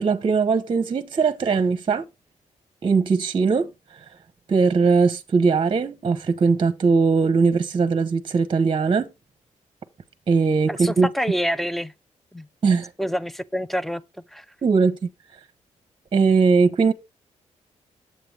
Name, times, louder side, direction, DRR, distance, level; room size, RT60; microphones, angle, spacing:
voice 1, 0.0-2.1 2.8-4.2 4.5-9.1 10.3-11.1 12.6-12.9 14.6-15.0 15.3-15.4 16.1-16.9, right 4 dB, 40° right, 0.8 m, -20 dB
voice 2, 10.7-11.9 12.3-12.5 13.0-14.0 14.3-14.4, equal, ahead, 0.5 m, -26 dB
7.7 x 7.6 x 3.3 m
cardioid pair, 90°, 13 cm